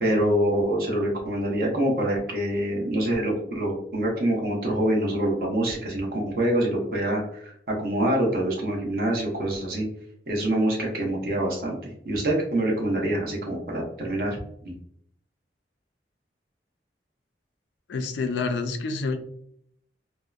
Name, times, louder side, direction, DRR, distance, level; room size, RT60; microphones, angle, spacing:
voice 1, 0.0-9.8 10.3-14.4, right 1 dB, 55° right, -2 dB, 0.8 m, -25 dB
voice 2, 17.9-19.2, left 4 dB, 80° left, 7 dB, 0.4 m, -28 dB
2.7 x 2.1 x 2.3 m, 0.68 s
head